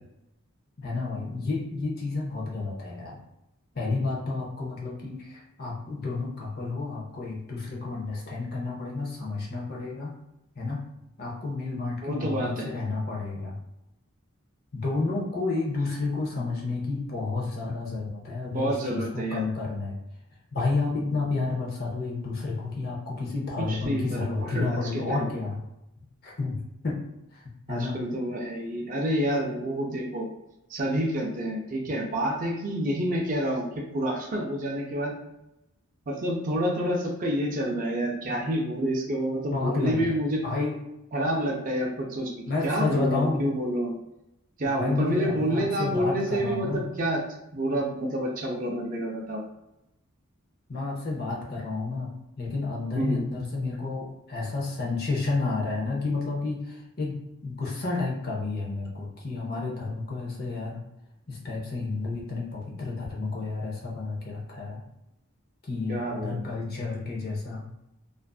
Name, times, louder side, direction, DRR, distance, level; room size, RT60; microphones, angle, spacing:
voice 1, 0.8-3.2 3.7-10.1 10.6-10.8 11.2-13.6 14.7-20.0 20.5-25.6 26.2-27.0 27.3-28.0 39.5-40.2 40.4-40.8 42.5-43.4 44.7-46.8 50.7-57.2 57.4-60.8 61.3-64.8 65.6-67.7, left 3 dB, 45° left, -2 dB, 0.6 m, -31 dB
voice 2, 12.0-12.7 18.5-19.4 23.6-25.3 27.7-30.3 30.7-35.1 36.1-40.4 41.1-42.3 42.6-44.0 44.6-47.2 47.5-49.4 52.9-53.2 65.9-66.6, right 1 dB, 40° right, -1 dB, 0.5 m, -28 dB
2.4 x 2.4 x 2.3 m, 0.88 s
head